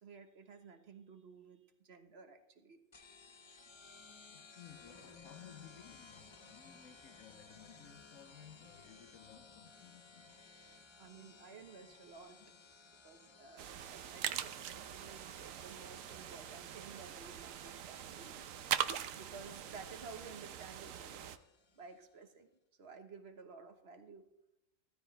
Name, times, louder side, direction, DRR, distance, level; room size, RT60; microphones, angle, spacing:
voice 1, 0.0-2.8 11.0-12.4 13.0-18.5 19.1-21.4 21.7-22.5 22.8-24.3, right 4 dB, 55° right, 1.4 m, -54 dB
sound 1, 2.9-22.1, left 4 dB, 30° left, 0.6 m, -60 dB
voice 2, 4.3-10.3 12.4-12.5, left 10 dB, 80° left, 1.1 m, -57 dB
sound 2, 13.6-21.4, right 10 dB, 80° right, 1.1 m, -42 dB
15.5 x 14.0 x 3.2 m
omnidirectional pair, 1.3 m